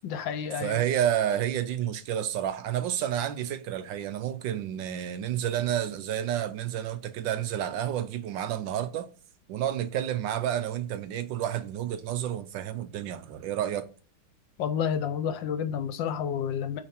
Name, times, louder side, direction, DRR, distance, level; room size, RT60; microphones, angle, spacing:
voice 1, 0.0-0.8 14.6-16.8, left 8 dB, 70° left, 1.3 m, -30 dB
voice 2, 0.6-9.1 9.5-13.9, right 10 dB, 75° right, 1.2 m, -30 dB
8.8 x 3.3 x 4.4 m
omnidirectional pair, 2.3 m